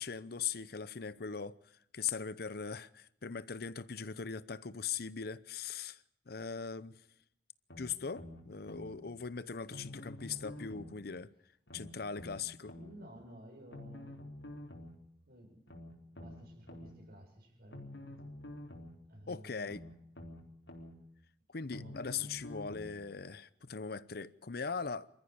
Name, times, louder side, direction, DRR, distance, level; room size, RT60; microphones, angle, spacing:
voice 1, 0.0-1.6 1.9-6.9 7.8-11.3 11.7-12.7 19.3-19.8 21.5-25.1, left 6 dB, 60° left, 0.8 m, -40 dB
sound 1, 7.7-8.9 9.7-11.0 11.7-12.9 13.7-15.0 15.7-16.9 17.7-19.0 19.7-20.9 21.7-23.0 23.7-23.8, left 1 dB, 90° left, 3.9 m, -48 dB
voice 2, 10.3-10.8 12.6-14.2 15.3-15.8 16.1-17.9 19.1-19.7 21.7-22.1, right 1 dB, 60° right, 7.6 m, -54 dB
26.5 x 14.5 x 8.8 m
head